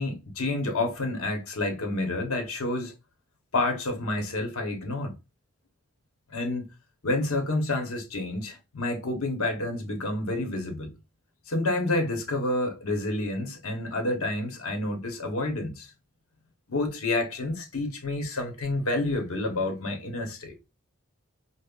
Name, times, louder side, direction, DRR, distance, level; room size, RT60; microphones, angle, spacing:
voice 1, 0.0-2.9 3.5-5.1 6.3-6.7 7.0-10.9 11.5-15.9 16.7-20.5, left 2 dB, 75° left, 0.9 m, -29 dB
5.1 x 2.1 x 2.3 m
head